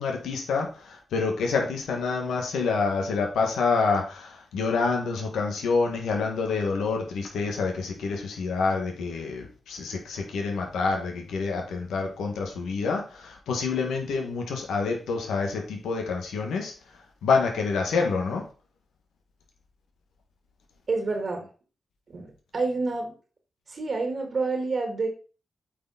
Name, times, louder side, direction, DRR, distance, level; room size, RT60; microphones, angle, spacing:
voice 1, 0.0-16.7 17.2-18.5, left 4 dB, 90° left, 2 dB, 1.7 m, -27 dB
voice 2, 20.9-21.5 22.1-23.1 23.7-25.1, right 3 dB, 65° right, 3 dB, 2.1 m, -28 dB
8.3 x 4.8 x 4.2 m, 0.36 s
supercardioid pair, 45°, 0 cm